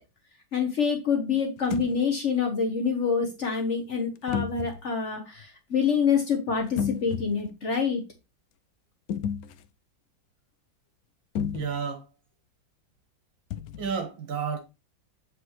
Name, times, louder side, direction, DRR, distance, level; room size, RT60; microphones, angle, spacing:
voice 1, 0.5-8.0, left 6 dB, 45° left, 1.1 m, -26 dB
sound 1, 1.6-2.0 4.3-4.8 6.6-7.5 9.1-9.7 11.4-11.8 13.5-13.9, left 8 dB, 85° left, 0.8 m, -32 dB
voice 2, 11.5-12.0 13.8-14.6, right 6 dB, 80° right, 2.3 m, -31 dB
7.9 x 4.7 x 3.1 m
omnidirectional pair, 2.1 m